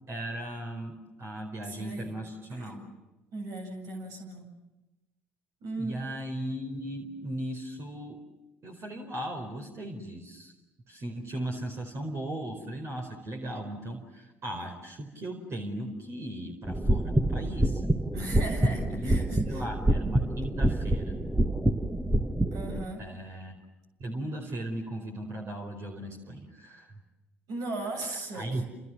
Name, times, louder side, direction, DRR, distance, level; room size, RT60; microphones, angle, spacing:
voice 1, 0.1-2.8 5.8-8.2 8.6-10.5 10.9-17.8 18.9-19.2 19.4-21.2 23.0-23.6 24.0-26.9 28.1-28.6, right 1 dB, 40° right, 3 dB, 4.6 m, -37 dB
voice 2, 1.7-2.1 2.5-2.8 3.3-4.5 5.6-6.0 18.1-19.6 22.5-23.0 24.4-24.5 27.5-28.6, right 2 dB, 60° right, 3 dB, 7.8 m, -37 dB
sound 1, 16.7-22.8, right 1 dB, 10° right, 1.7 m, -27 dB
29.0 x 28.0 x 7.3 m, 1.0 s
hypercardioid pair, 60°, 7 cm